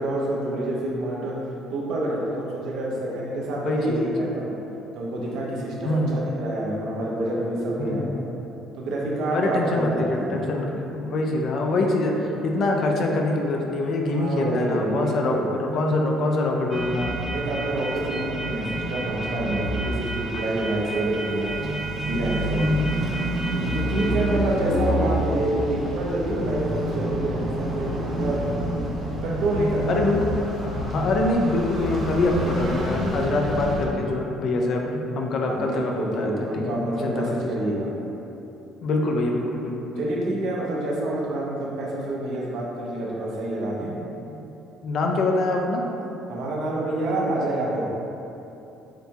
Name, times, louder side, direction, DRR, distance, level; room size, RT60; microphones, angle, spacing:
voice 1, 0.0-1.3 1.7-4.5 5.0-8.2 8.7-10.4 14.1-15.5 17.3-21.6 22.0-22.7 23.7-28.4 29.2-30.0 33.8-34.0 35.4-37.9 40.0-43.9 46.3-47.9, right 1 dB, 70° right, -4 dB, 0.9 m, -27 dB
voice 2, 3.6-4.3 5.8-6.3 7.8-8.1 9.3-17.1 22.6-23.1 23.5-23.8 29.9-30.2 30.6-37.6 38.8-40.0 44.3-44.4 44.8-45.8, left 2 dB, 55° left, 1 dB, 0.5 m, -25 dB
sound 1, 16.7-33.9, right 1 dB, 40° right, 0.8 m, -28 dB
7.5 x 2.7 x 2.3 m, 2.9 s
cardioid pair, 105°, 0 cm